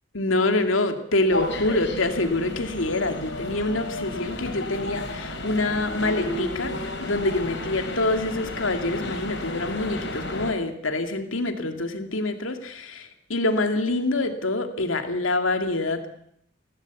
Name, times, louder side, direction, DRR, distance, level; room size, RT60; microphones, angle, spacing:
voice 1, 0.1-16.1, left 2 dB, 85° left, 6 dB, 2.5 m, -26 dB
sound 1, 1.3-10.5, left 1 dB, 65° left, 4.7 m, -33 dB
25.0 x 17.5 x 8.4 m, 0.70 s
head